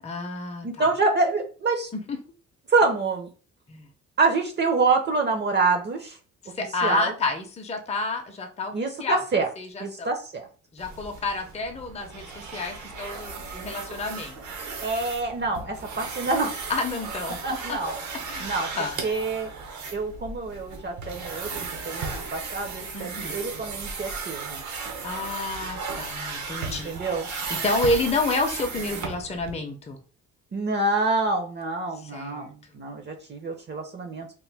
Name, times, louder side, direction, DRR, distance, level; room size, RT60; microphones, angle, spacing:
voice 1, 0.0-0.9 1.9-2.2 3.7-3.9 6.4-8.7 9.0-9.2 9.6-10.1 10.7-14.4 15.6-15.7 16.7-17.4 17.7-17.8 18.3-19.0 22.9-23.4 25.0-27.0 27.3-30.0 32.0-32.5, left 3 dB, 20° left, 4 dB, 0.6 m, -30 dB
voice 2, 0.6-1.9 2.7-3.3 4.2-6.2 6.8-7.1 8.7-9.5 9.8-10.5 14.8-16.6 17.4-17.9 18.4-18.7 19.0-19.5 19.9-24.6 26.7-27.3 30.5-34.3, right 3 dB, 35° right, 5 dB, 0.6 m, -26 dB
sound 1, 10.8-29.5, right 4 dB, 70° right, 0.9 m, -35 dB
3.0 x 2.1 x 3.4 m, 0.37 s
cardioid pair, 90°, 30 cm